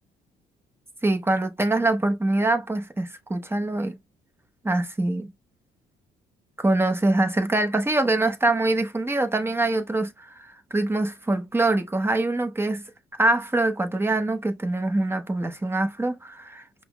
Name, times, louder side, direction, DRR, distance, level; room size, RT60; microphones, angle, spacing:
voice 1, 1.0-4.0 4.6-5.3 6.6-12.8 13.2-16.6, right 2 dB, 10° right, 0.8 m, -24 dB
5.3 x 2.1 x 2.3 m
supercardioid pair, 65°, 19 cm